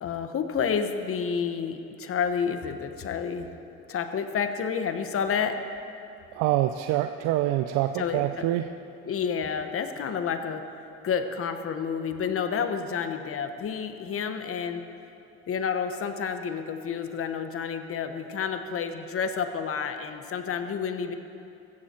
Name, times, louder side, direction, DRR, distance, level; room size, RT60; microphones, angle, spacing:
voice 1, 0.0-3.5 3.9-5.6 8.0-8.5 9.0-10.6 11.0-14.8 15.5-21.2, left 6 dB, 45° left, 8 dB, 1.2 m, -30 dB
voice 2, 6.3-8.7, right 14 dB, 80° right, 8 dB, 0.6 m, -26 dB
16.0 x 14.5 x 4.5 m, 2.8 s
supercardioid pair, 90°, 30 cm